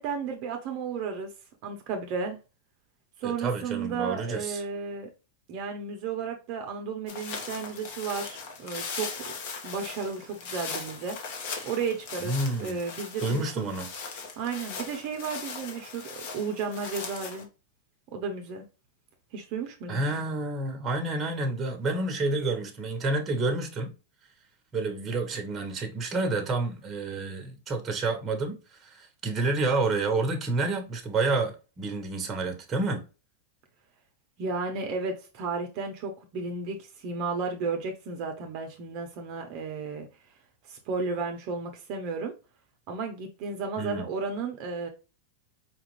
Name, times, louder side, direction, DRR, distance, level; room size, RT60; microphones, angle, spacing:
voice 1, 0.0-1.3 1.6-2.4 3.2-5.1 5.5-9.3 9.6-11.2 11.6-12.3 12.6-13.7 14.4-17.5 18.1-18.6 19.3-20.0 34.4-40.1 40.6-42.3 42.9-44.9, right 5 dB, 45° right, 0.8 m, -33 dB
voice 2, 3.2-4.6 12.2-12.8 13.2-13.9 19.9-23.9 24.7-33.0 43.8-44.0, right 3 dB, 20° right, 1.0 m, -29 dB
sound 1, 7.1-17.4, left 5 dB, 60° left, 1.1 m, -39 dB
4.8 x 2.5 x 3.1 m
supercardioid pair, 140°, 0 cm